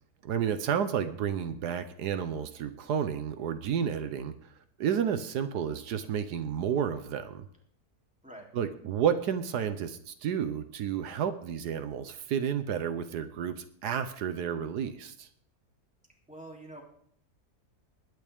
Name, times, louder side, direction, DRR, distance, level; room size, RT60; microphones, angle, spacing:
voice 1, 0.2-4.3 4.8-7.4 8.5-15.3, right 8 dB, 85° right, 10 dB, 1.4 m, -31 dB
voice 2, 16.3-16.8, right 1 dB, 5° right, -2 dB, 3.2 m, -45 dB
20.5 x 10.0 x 3.6 m, 0.65 s
omnidirectional pair, 1.7 m